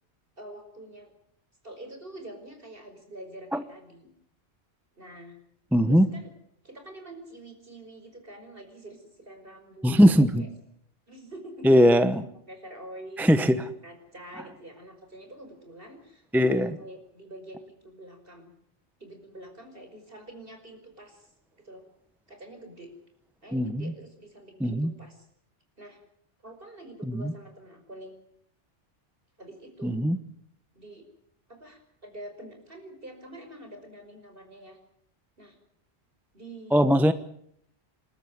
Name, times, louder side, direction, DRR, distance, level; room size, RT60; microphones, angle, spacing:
voice 1, 0.4-1.1 1.6-4.1 5.0-5.4 5.9-6.3 6.6-10.1 10.4-10.5 11.1-11.7 12.5-18.5 19.0-21.8 22.3-22.9 23.4-25.3 25.8-26.0 26.4-28.2 29.4-30.0 30.7-31.0 31.5-34.8 35.4-35.6 36.3-36.8, right 1 dB, 50° right, 5 dB, 5.6 m, -46 dB
voice 2, 5.7-6.1 9.8-10.4 11.6-12.2 13.2-13.6 16.3-16.8 23.5-23.8 24.6-24.9 27.1-27.3 29.8-30.2 36.7-37.1, equal, ahead, 11 dB, 0.9 m, -20 dB
28.0 x 13.0 x 9.7 m, 0.70 s
omnidirectional pair, 1.2 m